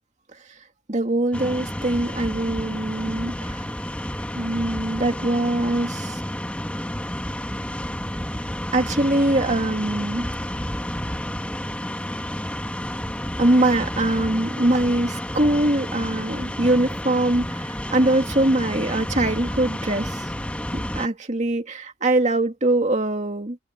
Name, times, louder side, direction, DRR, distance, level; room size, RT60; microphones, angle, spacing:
voice 1, 0.9-3.7 4.3-6.2 8.7-10.3 13.4-20.3 20.7-23.6, right 1 dB, 35° right, 2.2 m, -22 dB
sound 1, 1.3-21.1, equal, 5° left, 1.5 m, -30 dB
head